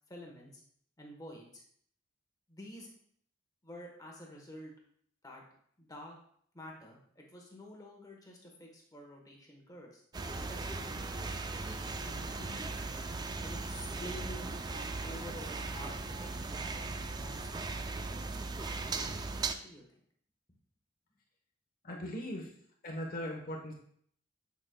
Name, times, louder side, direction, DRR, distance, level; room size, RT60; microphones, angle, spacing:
voice 1, 0.1-0.6 1.0-1.6 2.5-2.9 3.6-4.7 5.2-5.4 5.8-6.2 6.5-10.0 10.5-12.8 13.4-16.9 17.2-17.9 18.8-19.0 19.5-20.0, equal, 20° left, -1 dB, 1.1 m, -49 dB
sound 1, 10.1-19.5, right 3 dB, 20° right, 0.3 m, -38 dB
voice 2, 21.8-22.5 22.8-23.7, equal, 45° left, 0 dB, 0.9 m, -39 dB
8.8 x 5.2 x 2.2 m, 0.64 s
head